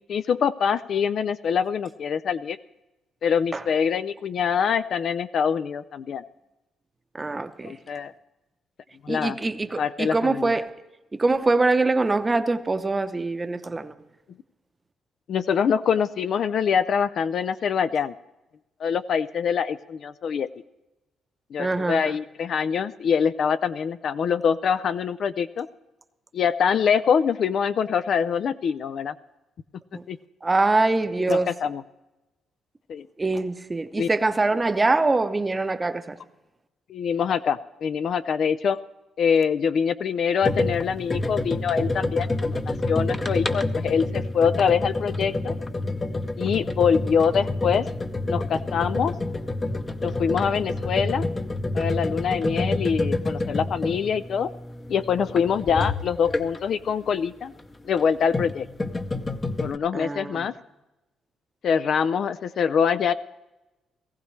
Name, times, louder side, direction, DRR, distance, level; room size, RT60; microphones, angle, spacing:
voice 1, 0.1-2.6 3.2-6.2 7.6-8.1 9.0-9.4 9.8-10.5 15.3-18.1 18.8-20.5 21.5-25.7 26.3-29.1 30.1-30.2 31.3-31.8 32.9-33.1 34.0-34.1 36.9-38.8 39.2-45.5 46.4-47.8 48.3-49.1 50.0-51.3 51.7-54.5 54.9-57.5 57.9-58.7 59.6-60.5 61.6-63.1, left 7 dB, 60° left, 0.4 m, -24 dB
voice 2, 7.1-7.7 9.1-10.7 11.1-13.9 21.6-22.1 29.9-30.0 30.4-31.5 33.2-36.2 59.9-60.5, right 3 dB, 20° right, 0.7 m, -24 dB
sound 1, 40.4-56.8 57.9-59.8, left 2 dB, 25° left, 0.8 m, -28 dB
18.5 x 15.0 x 3.2 m
cardioid pair, 90°, 0 cm